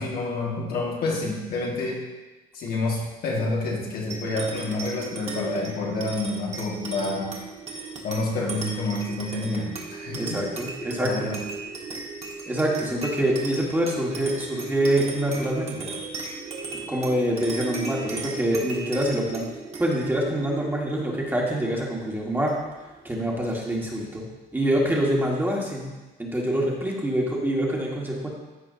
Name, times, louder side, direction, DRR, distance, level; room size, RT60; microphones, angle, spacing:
voice 1, 0.0-2.0 2.5-7.3 8.0-10.4 11.0-11.4, left 2 dB, 65° left, -2 dB, 1.9 m, -28 dB
sound 1, 4.1-22.9, right 4 dB, 35° right, 1.6 m, -36 dB
voice 2, 10.2-11.3 12.5-15.9 16.9-19.5 19.8-22.5 23.0-24.2 24.5-25.9 26.2-28.3, right 1 dB, 10° right, -3 dB, 1.7 m, -25 dB
14.5 x 4.8 x 2.8 m, 1.1 s
cardioid pair, 110°, 17 cm